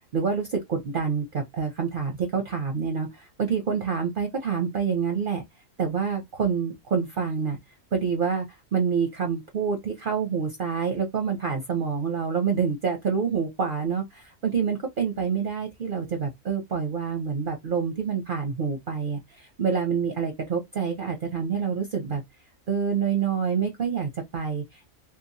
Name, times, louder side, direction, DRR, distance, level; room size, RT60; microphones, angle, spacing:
voice 1, 0.1-5.4 5.8-7.6 7.9-8.5 8.7-22.2 22.7-24.9, right 6 dB, 55° right, 0.6 m, -27 dB
2.9 x 2.2 x 2.6 m
omnidirectional pair, 1.5 m